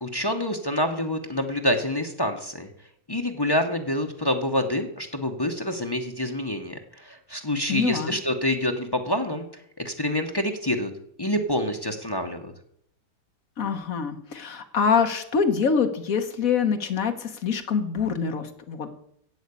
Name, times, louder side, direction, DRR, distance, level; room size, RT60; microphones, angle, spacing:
voice 1, 0.0-2.7 3.1-9.4 9.8-10.9 11.2-12.5, left 1 dB, 30° left, 3 dB, 0.4 m, -27 dB
voice 2, 7.7-8.1 13.6-18.9, left 6 dB, 55° left, 7 dB, 1.3 m, -25 dB
9.2 x 7.8 x 8.3 m, 0.72 s
omnidirectional pair, 2.1 m